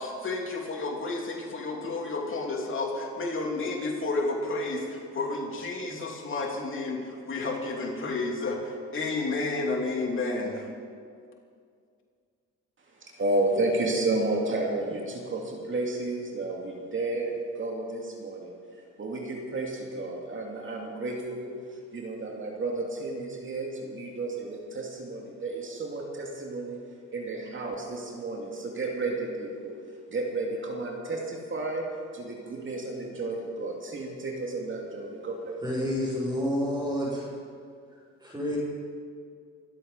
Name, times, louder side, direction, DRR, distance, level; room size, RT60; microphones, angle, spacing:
voice 1, 0.0-10.7, left 3 dB, 40° left, -1 dB, 3.0 m, -31 dB
voice 2, 12.8-26.8 27.1-29.8 30.1-35.9, right 2 dB, 40° right, 0 dB, 2.6 m, -32 dB
voice 3, 35.6-37.3 38.2-38.6, equal, 10° right, -11 dB, 5.1 m, -29 dB
25.0 x 8.4 x 5.5 m, 2.2 s
cardioid pair, 90°, 30 cm